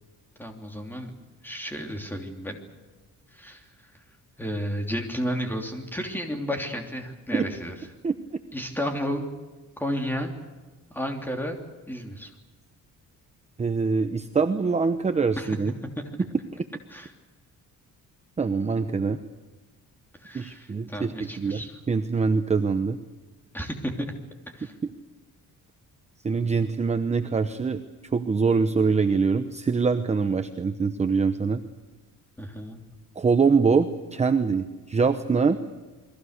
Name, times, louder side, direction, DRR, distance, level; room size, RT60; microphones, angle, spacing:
voice 1, 0.4-1.2 1.4-2.6 3.3-4.0 4.4-7.7 8.5-9.3 9.8-10.3 10.9-11.6 11.9-12.3 15.4-15.6 16.1-16.2 16.9-17.1 20.2-21.8 23.5-24.1 24.5-24.7 32.4-32.8, equal, 5° left, 3 dB, 3.1 m, -32 dB
voice 2, 13.6-15.7 18.4-19.2 20.3-23.0 26.2-27.8 28.1-31.6 33.2-35.6, right 5 dB, 20° right, 8 dB, 0.9 m, -24 dB
29.0 x 22.0 x 6.7 m, 1.2 s
cardioid pair, 170°, 33 cm